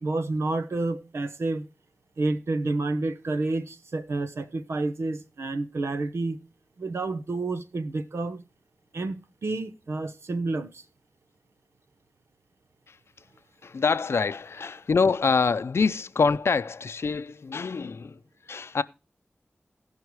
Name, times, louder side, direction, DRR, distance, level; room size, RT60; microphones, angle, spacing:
voice 1, 0.0-1.7 2.2-6.4 6.8-8.4 8.9-10.8, right 2 dB, 90° right, 1.0 m, -29 dB
voice 2, 13.6-18.2 18.5-18.8, left 5 dB, 80° left, 0.5 m, -25 dB
16.5 x 5.6 x 4.7 m
wide cardioid pair, 50°, 4 cm